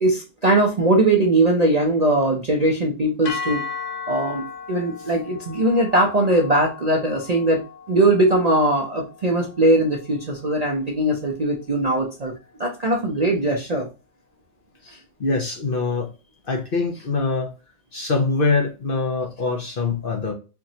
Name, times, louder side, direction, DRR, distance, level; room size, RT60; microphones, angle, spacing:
voice 1, 0.0-3.6 4.1-12.3 12.6-13.9, right 1 dB, 45° right, 0 dB, 0.5 m, -20 dB
sound 1, 3.2-11.5, left 5 dB, 65° left, 1.1 m, -37 dB
voice 2, 15.2-16.1 16.5-17.5 17.9-20.3, left 3 dB, 45° left, 2 dB, 0.8 m, -23 dB
4.5 x 3.0 x 2.7 m, 0.31 s
omnidirectional pair, 1.5 m